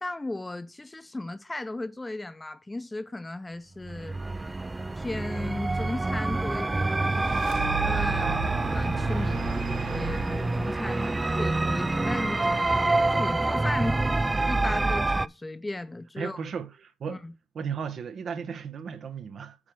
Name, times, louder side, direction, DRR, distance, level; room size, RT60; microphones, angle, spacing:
voice 1, 0.0-4.2 4.9-7.0 7.8-9.6 9.9-14.0 14.5-16.5 17.1-17.3, left 2 dB, 15° left, 0.9 m, -36 dB
sound 1, 3.8-15.3, right 2 dB, 15° right, 0.3 m, -27 dB
sound 2, 6.8-12.1, right 7 dB, 90° right, 1.1 m, -36 dB
voice 2, 8.2-8.8 16.2-17.2 17.5-19.6, right 6 dB, 55° right, 1.0 m, -35 dB
8.7 x 3.3 x 6.0 m
cardioid pair, 90°, 0 cm